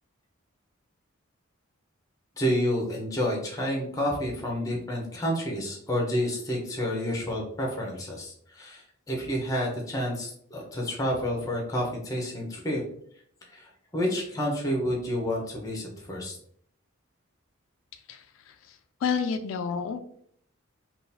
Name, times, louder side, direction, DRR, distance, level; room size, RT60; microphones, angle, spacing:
voice 1, 2.4-12.8 13.5-16.4, equal, 15° left, 0 dB, 0.7 m, -29 dB
voice 2, 18.1-18.5 19.0-20.2, left 6 dB, 70° left, 7 dB, 0.3 m, -30 dB
3.7 x 2.4 x 2.7 m, 0.64 s
head